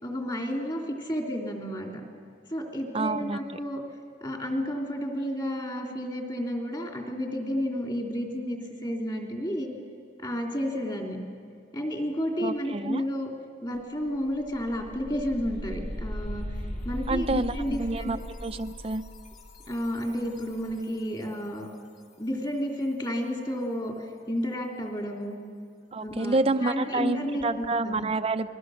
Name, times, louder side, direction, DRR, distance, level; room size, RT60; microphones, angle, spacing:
voice 1, 0.0-2.0 2.5-3.8 4.2-9.7 10.2-11.2 11.7-13.3 13.6-16.5 16.8-18.1 19.7-21.7 22.2-25.4 26.0-28.0, equal, 25° left, 1 dB, 3.2 m, -31 dB
voice 2, 2.9-3.4 12.4-13.0 17.1-19.0 25.9-28.5, right 2 dB, 30° right, 9 dB, 0.6 m, -28 dB
sound 1, 13.7-13.8 14.2-20.9, equal, 40° left, 3.0 m, -38 dB
29.5 x 21.5 x 6.5 m, 2.3 s
head